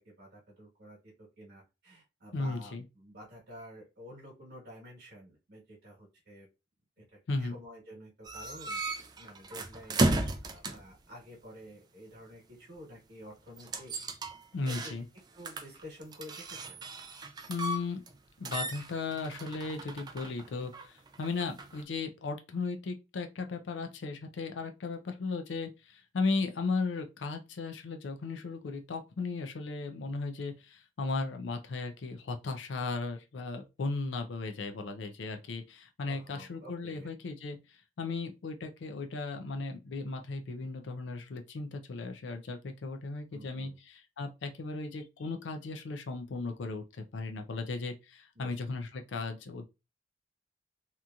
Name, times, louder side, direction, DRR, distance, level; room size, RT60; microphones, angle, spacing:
voice 1, 0.0-6.5 7.0-7.1 7.3-8.8 9.2-10.1 10.4-13.9 14.6-14.9 15.3-16.8 36.1-37.1 43.3-43.8 48.3-48.5, equal, 60° right, 1.3 m, -50 dB
voice 2, 2.3-2.8 7.3-7.6 14.5-15.1 17.5-18.0 18.4-49.6, left 3 dB, 75° left, 0.5 m, -36 dB
sound 1, 8.3-11.0 13.6-15.2 15.4-18.2 18.4-21.8, right 2 dB, 20° right, 0.3 m, -35 dB
2.9 x 2.6 x 2.3 m
head